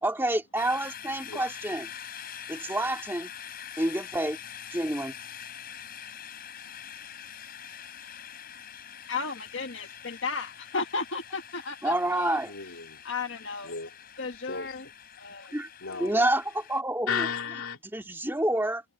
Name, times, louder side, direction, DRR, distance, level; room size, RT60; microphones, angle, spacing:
voice 1, 0.0-1.9 2.5-3.3 3.8-4.4 4.7-5.1 11.8-12.5 15.5-15.7 16.0-17.3 17.9-18.8, right 1 dB, 10° right, 2.2 m, -28 dB
sound 1, 0.6-16.8, left 9 dB, 45° left, 5.8 m, -44 dB
voice 2, 9.1-12.4 13.0-13.7 14.2-14.9 15.2-15.5 15.8-16.2, left 4 dB, 65° left, 1.6 m, -34 dB
voice 3, 12.5-13.0 13.6-14.0 14.5-14.7 15.8-16.2 17.1-17.8, left 6 dB, 80° left, 2.6 m, -33 dB
head